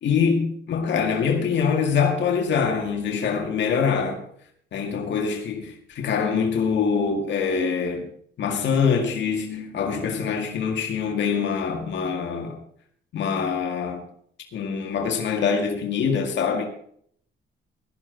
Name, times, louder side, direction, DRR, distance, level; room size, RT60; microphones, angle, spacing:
voice 1, 0.0-4.2 4.7-8.1 8.4-12.6 13.1-14.0 14.5-16.7, left 6 dB, 65° left, 2.1 m, -24 dB
17.0 x 11.5 x 4.0 m
cardioid pair, 90°, 20 cm